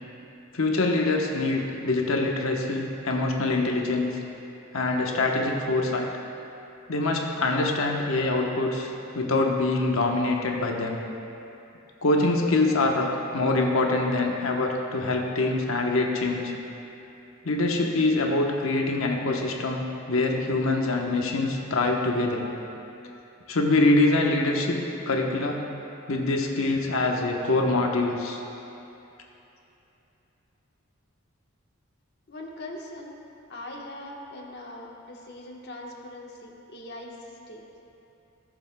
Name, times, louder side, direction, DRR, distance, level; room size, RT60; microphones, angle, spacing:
voice 1, 0.5-4.2 4.7-6.1 6.9-11.0 12.0-16.5 17.4-22.4 23.5-25.6 26.1-28.4, left 2 dB, 80° left, 1 dB, 1.0 m, -24 dB
voice 2, 32.3-33.1 33.5-37.6, left 1 dB, 55° left, -1 dB, 1.2 m, -41 dB
17.0 x 7.0 x 2.2 m, 2.9 s
head